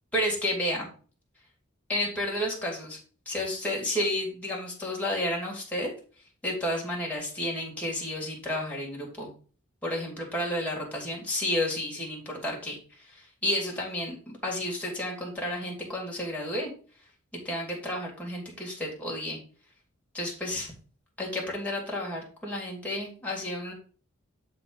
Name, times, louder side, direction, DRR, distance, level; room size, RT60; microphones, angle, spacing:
voice 1, 0.1-0.9 1.9-3.0 3.3-5.9 6.4-9.3 9.8-16.7 17.4-19.4 20.1-20.7 21.2-23.7, left 1 dB, 5° left, -2 dB, 2.5 m, -31 dB
7.0 x 4.0 x 5.5 m, 0.40 s
head